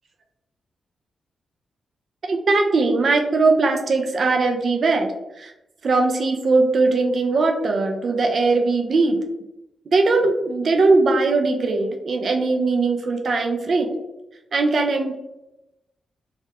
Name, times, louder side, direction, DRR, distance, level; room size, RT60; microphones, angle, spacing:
voice 1, 2.3-5.1 5.4-5.5 5.8-9.2 9.9-13.9 14.5-15.1, right 3 dB, 60° right, 4 dB, 0.4 m, -20 dB
2.3 x 2.0 x 3.4 m, 0.93 s
cardioid pair, 55°, 0 cm